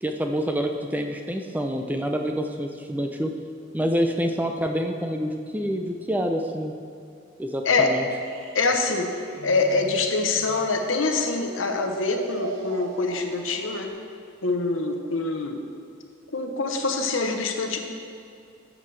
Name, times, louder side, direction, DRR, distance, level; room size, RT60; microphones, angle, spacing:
voice 1, 0.0-3.3 3.7-6.7 7.4-8.1, equal, 10° right, 4 dB, 0.5 m, -27 dB
sound 1, 8.2-13.9, right 2 dB, 85° right, 0.9 m, -39 dB
voice 2, 8.5-9.0 9.4-13.9 14.4-15.6 16.3-17.8, left 3 dB, 80° left, 4 dB, 0.9 m, -24 dB
12.0 x 7.4 x 3.3 m, 2.5 s
head